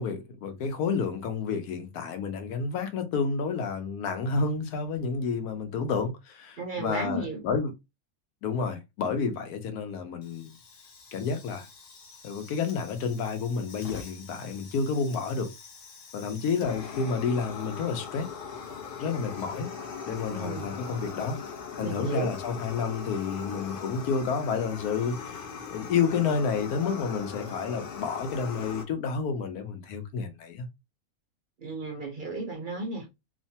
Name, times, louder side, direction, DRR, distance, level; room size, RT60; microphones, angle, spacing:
voice 1, 0.0-7.7 8.4-10.5 11.1-11.7 12.2-15.5 16.1-18.3 19.0-19.7 20.1-21.4 21.8-30.7, left 5 dB, 85° left, 1.2 m, -30 dB
voice 2, 6.6-7.4 20.3-20.7 21.8-22.3 31.6-33.1, right 2 dB, 50° right, 0.6 m, -34 dB
Fire, 10.2-28.8, left 6 dB, 60° left, 0.6 m, -41 dB
3.0 x 2.1 x 2.7 m
omnidirectional pair, 1.5 m